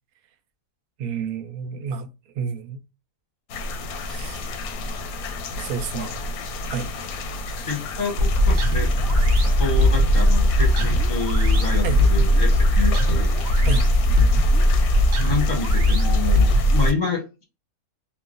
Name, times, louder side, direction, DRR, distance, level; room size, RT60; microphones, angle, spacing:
voice 1, 1.0-2.1 2.3-2.8 4.0-4.5 5.6-6.2 6.7-6.9 11.8-12.0 13.6-13.8, right 6 dB, 85° right, 1.0 m, -30 dB
sound 1, 3.5-16.9, left 2 dB, 90° left, 1.0 m, -32 dB
voice 2, 7.6-8.9 9.6-13.4 15.2-17.4, left 4 dB, 40° left, 0.7 m, -28 dB
sound 2, 8.2-16.9, equal, 60° right, 0.8 m, -18 dB
3.0 x 2.1 x 2.4 m
omnidirectional pair, 1.5 m